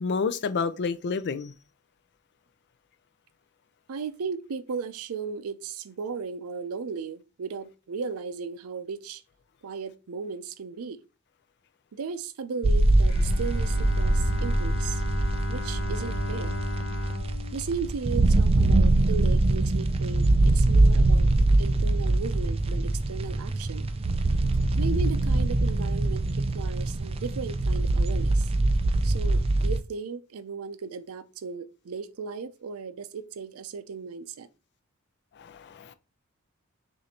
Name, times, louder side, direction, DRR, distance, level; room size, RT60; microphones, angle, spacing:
voice 1, 0.0-1.5 35.4-35.9, left 5 dB, 55° left, 0.4 m, -29 dB
voice 2, 3.9-9.2 9.6-11.0 11.9-15.0 15.5-16.5 17.5-21.3 21.6-23.9 24.8-28.5 29.0-34.5, right 5 dB, 85° right, 0.5 m, -36 dB
sound 1, 12.6-29.8, right 2 dB, 25° right, 0.3 m, -23 dB
Bowed string instrument, 13.0-19.0, left 1 dB, 70° left, 0.8 m, -35 dB
6.2 x 2.6 x 2.8 m
head